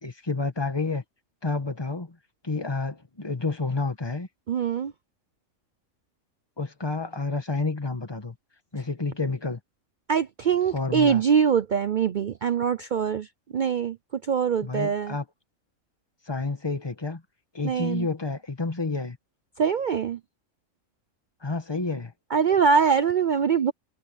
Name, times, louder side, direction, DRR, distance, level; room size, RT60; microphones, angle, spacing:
voice 1, 0.0-1.0 1.4-2.2 2.4-4.3 6.6-8.3 8.7-9.6 10.7-11.2 14.6-15.2 16.3-17.2 17.5-19.2 21.4-22.1, left 3 dB, 20° left, 1.5 m, -29 dB
voice 2, 4.5-4.9 10.1-13.3 13.5-14.0 14.3-15.2 17.6-18.1 19.6-20.2 22.3-23.7, right 6 dB, 60° right, 0.5 m, -23 dB
omnidirectional pair, 1.4 m